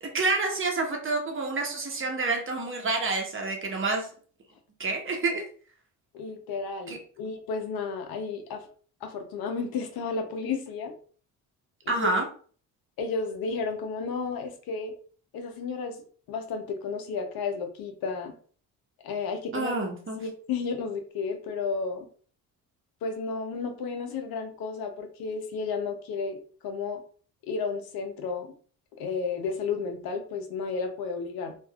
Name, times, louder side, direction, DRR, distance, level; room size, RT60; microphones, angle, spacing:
voice 1, 0.0-4.1 4.8-5.4 6.9-7.0 11.9-12.3 19.5-20.2, right 3 dB, 35° right, 2 dB, 0.9 m, -28 dB
voice 2, 6.1-8.6 9.0-10.9 11.8-12.1 13.0-14.9 15.3-16.0 16.3-18.3 19.0-19.7 20.2-22.1 23.0-27.0 27.4-28.5 29.0-31.6, left 4 dB, 75° left, 5 dB, 0.7 m, -32 dB
3.2 x 2.5 x 2.3 m, 0.43 s
cardioid pair, 85°, 37 cm